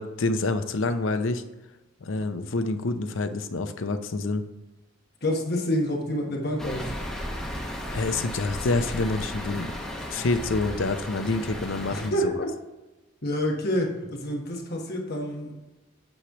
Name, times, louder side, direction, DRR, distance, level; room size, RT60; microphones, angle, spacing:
voice 1, 0.0-1.4 2.0-4.4 7.9-9.7 10.1-12.3, left 3 dB, 70° left, 9 dB, 0.6 m, -27 dB
voice 2, 5.2-6.9 11.9-12.5 13.2-15.5, equal, 50° left, 0 dB, 1.4 m, -28 dB
sound 1, 6.6-12.1, equal, 5° left, 1.1 m, -35 dB
8.9 x 3.2 x 5.9 m, 1.0 s
head